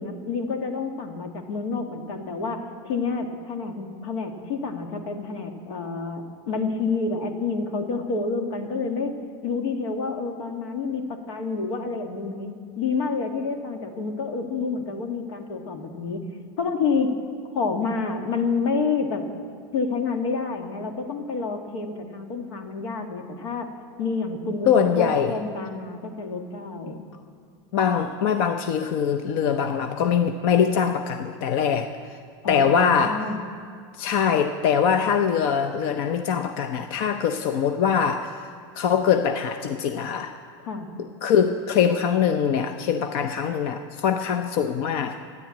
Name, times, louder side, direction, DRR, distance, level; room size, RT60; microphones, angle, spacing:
voice 1, 0.0-9.1 9.4-16.3 16.6-17.2 17.5-19.3 19.7-23.7 24.0-24.7 25.0-27.0 32.4-33.4 40.6-40.9, left 4 dB, 80° left, 4 dB, 2.0 m, -28 dB
voice 2, 24.6-25.3 27.7-32.2 32.5-33.3 33.9-38.4 38.8-40.4 41.0-45.2, left 7 dB, 50° left, 8 dB, 0.7 m, -23 dB
13.5 x 10.5 x 8.5 m, 2.1 s
supercardioid pair, 170°, 15 cm